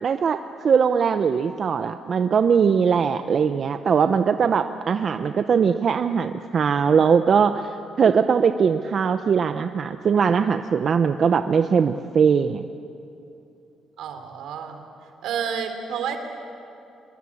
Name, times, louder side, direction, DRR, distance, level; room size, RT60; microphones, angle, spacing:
voice 1, 0.0-12.7, right 6 dB, 50° right, 9 dB, 0.8 m, -21 dB
voice 2, 14.0-14.8 15.2-16.2, right 7 dB, 80° right, 6 dB, 3.3 m, -30 dB
25.0 x 22.0 x 8.6 m, 2.7 s
cardioid pair, 90°, 0 cm